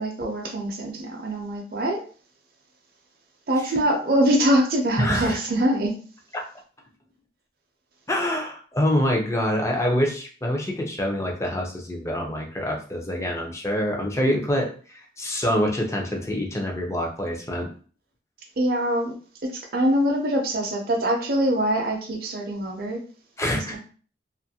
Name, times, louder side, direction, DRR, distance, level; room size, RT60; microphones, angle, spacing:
voice 1, 0.0-2.0 3.5-6.0 18.6-19.1 19.4-23.0 23.7-23.8, right 1 dB, 55° right, 0 dB, 0.6 m, -23 dB
voice 2, 5.0-5.4 8.1-17.7 23.4-23.8, equal, 15° left, 0 dB, 0.5 m, -26 dB
2.6 x 2.5 x 2.7 m, 0.41 s
head